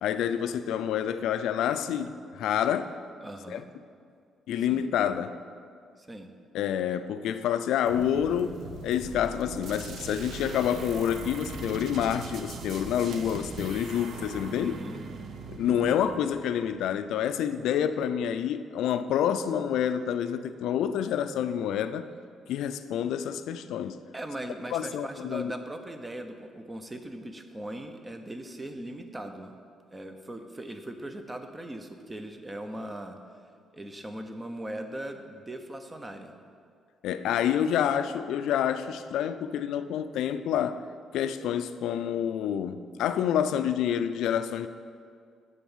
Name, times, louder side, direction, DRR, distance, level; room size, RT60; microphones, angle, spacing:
voice 1, 0.0-3.0 3.5-3.6 4.5-5.4 6.5-14.8 15.5-22.0 22.5-24.0 24.7-25.5 37.0-40.9 41.1-44.7, left 9 dB, 85° left, 0.3 m, -28 dB
voice 2, 3.2-3.7 4.7-4.9 6.0-6.3 14.5-15.0 15.6-16.0 24.1-29.5 29.9-33.2 33.7-36.3, right 1 dB, 20° right, 0.7 m, -39 dB
sound 1, 7.8-14.6, right 1 dB, 80° right, 1.2 m, -43 dB
sound 2, 9.0-13.2, right 2 dB, 45° right, 1.9 m, -48 dB
sound 3, 9.6-17.2, right 5 dB, 65° right, 0.6 m, -43 dB
9.1 x 4.0 x 7.2 m
cardioid pair, 90°, 0 cm